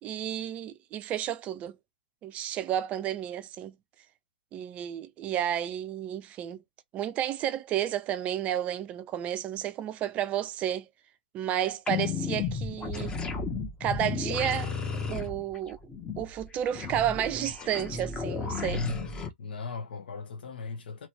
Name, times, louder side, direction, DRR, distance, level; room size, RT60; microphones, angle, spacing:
voice 1, 0.0-1.8 2.2-3.8 4.5-6.6 6.9-10.9 11.3-13.2 13.8-14.7 15.1-15.8 16.2-18.9, right 11 dB, 25° right, 0.5 m, -31 dB
sound 1, 11.9-19.3, left 5 dB, 15° left, 0.9 m, -33 dB
voice 2, 18.6-21.1, left 4 dB, 65° left, 1.1 m, -37 dB
3.1 x 3.0 x 3.0 m
hypercardioid pair, 130°, 6 cm